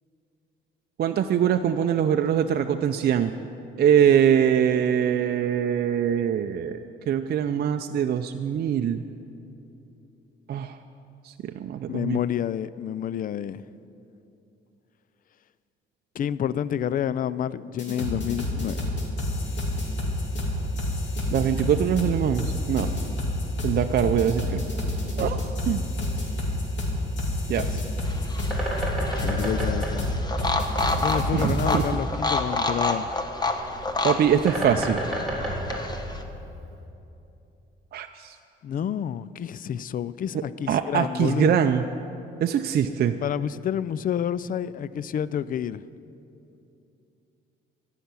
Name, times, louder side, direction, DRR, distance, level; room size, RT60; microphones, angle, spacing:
voice 1, 1.0-3.3 3.8-6.8 7.1-9.0 10.5-10.8 11.2-12.2 21.3-22.9 23.6-24.6 25.2-25.4 25.7-25.8 27.5-27.7 31.3-31.8 34.0-35.0 37.9-38.4 40.7-41.8 42.4-43.1, right 9 dB, 55° right, 0.5 m, -23 dB
voice 2, 11.9-13.6 16.2-18.9 27.5-27.6 29.2-30.2 31.0-33.2 38.6-41.5 43.2-45.8, left 9 dB, 45° left, 0.4 m, -29 dB
sound 1, 17.8-31.9, left 1 dB, 65° left, 2.7 m, -28 dB
Bird, 27.7-36.8, equal, ahead, 3.5 m, -33 dB
sound 2, 28.1-36.2, left 2 dB, 20° left, 1.0 m, -29 dB
14.0 x 5.8 x 9.5 m
cardioid pair, 90°, 20 cm